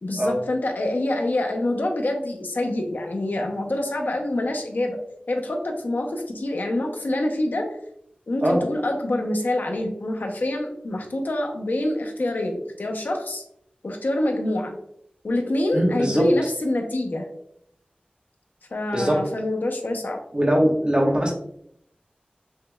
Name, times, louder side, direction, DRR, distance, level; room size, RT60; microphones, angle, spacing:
voice 1, 0.0-5.0 5.3-7.8 8.3-13.4 13.8-14.8 15.2-17.3 18.7-20.2, left 1 dB, 80° left, 3 dB, 0.8 m, -26 dB
voice 2, 15.7-16.3 18.9-19.2 20.3-21.3, equal, 30° right, -1 dB, 1.2 m, -21 dB
6.3 x 3.2 x 2.3 m, 0.72 s
wide cardioid pair, 50°, 3 cm